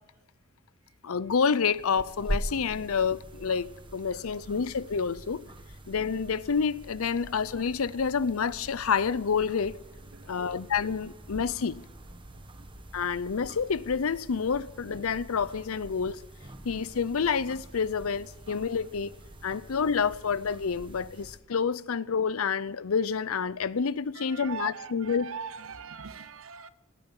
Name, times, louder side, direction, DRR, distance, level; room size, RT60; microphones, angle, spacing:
voice 1, 1.0-5.4 5.9-9.8 10.3-11.8 12.9-16.2 16.6-19.1 19.4-25.3, left 6 dB, 80° left, 0.6 m, -28 dB
sound 1, 1.7-21.4, right 1 dB, 25° right, 1.0 m, -43 dB
voice 2, 10.1-10.5 12.3-12.8 24.1-26.7, right 6 dB, 70° right, 0.9 m, -42 dB
16.5 x 9.1 x 8.3 m
head